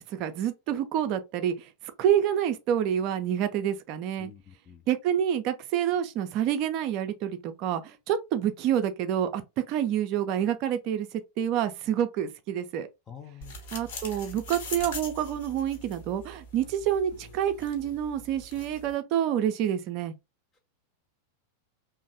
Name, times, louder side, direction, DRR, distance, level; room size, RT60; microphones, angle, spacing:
voice 1, 0.0-1.7 2.0-4.3 4.9-9.4 9.7-12.9 13.7-20.1, right 10 dB, 40° right, 0.4 m, -28 dB
voice 2, 4.2-4.8 13.1-13.6, left 8 dB, 25° left, 0.4 m, -47 dB
sound 1, 13.4-18.9, left 2 dB, 55° left, 0.9 m, -42 dB
3.0 x 2.0 x 2.6 m
figure-of-eight pair, 90°, 0 cm